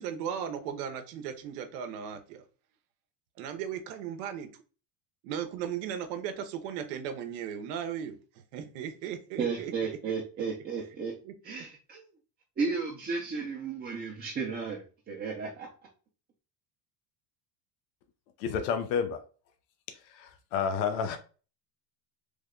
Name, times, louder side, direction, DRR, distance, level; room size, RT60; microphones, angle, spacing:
voice 1, 0.0-2.4 3.4-4.5 5.2-8.2 8.5-10.1 11.2-11.3, right 8 dB, 85° right, 0.8 m, -36 dB
voice 2, 9.4-11.2 11.4-12.1 12.6-15.7, right 5 dB, 20° right, 0.5 m, -34 dB
voice 3, 18.4-19.2 19.9-21.2, left 6 dB, 90° left, 0.7 m, -30 dB
3.3 x 2.2 x 3.6 m
cardioid pair, 130°, 48 cm